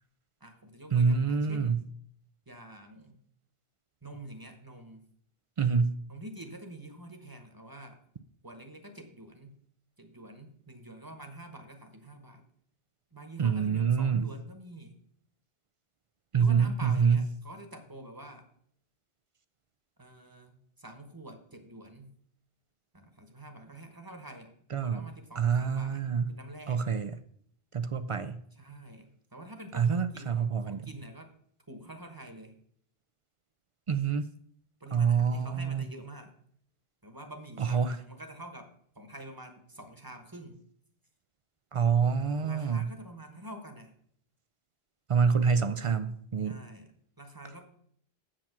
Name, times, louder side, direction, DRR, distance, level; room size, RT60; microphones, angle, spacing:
voice 1, 0.4-1.8 2.5-3.2 4.0-5.1 6.1-8.0 8.4-9.6 10.0-12.5 13.1-15.0 16.4-18.5 20.0-22.2 22.9-26.9 28.5-31.3 31.7-32.6 34.8-36.3 37.0-40.6 42.2-44.0 46.5-47.7, right 1 dB, 20° right, 1.1 m, -47 dB
voice 2, 0.9-1.8 5.6-6.0 13.4-14.3 16.3-17.2 24.7-25.1 25.4-26.3 26.7-27.1 27.7-28.4 29.7-30.9 33.9-34.3 34.9-35.8 37.6-38.0 41.7-42.9 45.1-46.6, right 6 dB, 50° right, 0.4 m, -26 dB
7.6 x 7.2 x 6.0 m
omnidirectional pair, 1.0 m